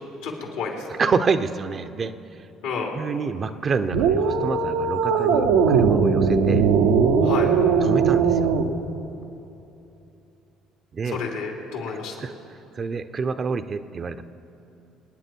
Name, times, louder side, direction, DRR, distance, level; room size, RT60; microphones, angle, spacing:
voice 1, 0.2-0.8 2.6-2.9 7.2-7.5 11.0-12.2, left 5 dB, 80° left, 0 dB, 3.3 m, -30 dB
voice 2, 0.9-2.1 2.9-6.7 7.8-8.5 10.9-11.2 11.9-14.2, right 5 dB, 40° right, 10 dB, 0.7 m, -27 dB
sound 1, 3.9-8.7, right 5 dB, 85° right, 1.1 m, -19 dB
25.5 x 9.7 x 4.6 m, 2.9 s
hypercardioid pair, 65°, 0 cm